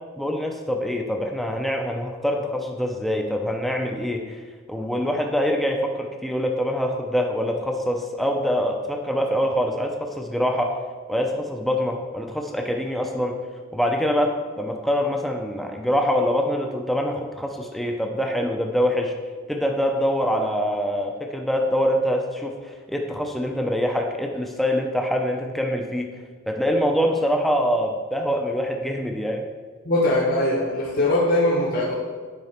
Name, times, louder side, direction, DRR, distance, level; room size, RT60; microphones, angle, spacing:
voice 1, 0.2-4.3 4.7-10.8 11.1-13.4 13.7-19.1 19.5-26.1 26.5-29.5, equal, ahead, 2 dB, 0.6 m, -24 dB
voice 2, 29.8-31.9, left 1 dB, 45° left, -5 dB, 1.1 m, -21 dB
9.5 x 4.1 x 5.7 m, 1.5 s
head